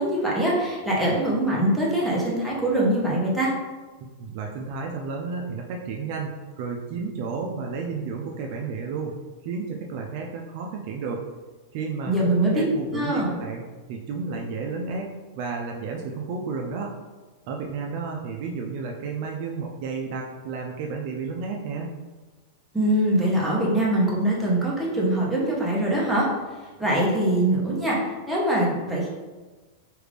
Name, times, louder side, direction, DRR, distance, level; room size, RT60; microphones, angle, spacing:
voice 1, 0.0-3.5 12.1-12.6 12.9-13.3 22.7-26.3 26.8-28.0 28.3-29.1, right 1 dB, ahead, -6 dB, 0.7 m, -23 dB
voice 2, 4.0-6.3 6.6-9.1 9.4-11.2 11.7-13.6 13.9-15.1 15.3-16.9 17.5-21.9, right 4 dB, 45° right, 0 dB, 0.4 m, -32 dB
3.3 x 2.4 x 3.3 m, 1.3 s
supercardioid pair, 165°, 0 cm